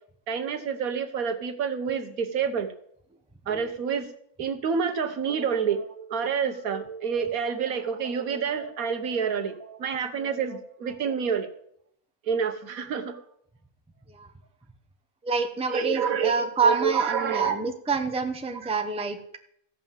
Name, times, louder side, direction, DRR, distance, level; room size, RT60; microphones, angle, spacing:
voice 1, 0.3-2.7 3.5-4.1 4.4-11.5 12.2-13.2 15.7-17.6, right 6 dB, 75° right, 7 dB, 1.5 m, -28 dB
voice 2, 15.2-19.4, right 4 dB, 5° right, 6 dB, 0.7 m, -27 dB
15.0 x 5.5 x 7.2 m, 0.71 s
omnidirectional pair, 1.5 m